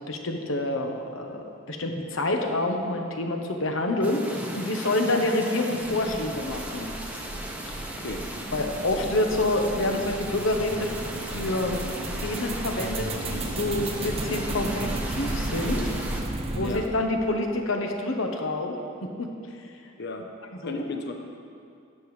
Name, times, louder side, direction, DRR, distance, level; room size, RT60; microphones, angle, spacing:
voice 1, 0.1-6.9 7.7-7.8 8.5-11.8 12.2-15.9 16.5-19.3 20.6-20.8, left 2 dB, 80° left, 3 dB, 1.0 m, -27 dB
sound 1, 4.0-16.2, right 1 dB, 5° right, 0.9 m, -37 dB
sound 2, 5.8-16.9, right 2 dB, 30° right, 0.7 m, -34 dB
voice 2, 20.6-21.1, left 3 dB, 60° left, 4 dB, 0.9 m, -33 dB
12.0 x 8.8 x 3.2 m, 2.4 s
head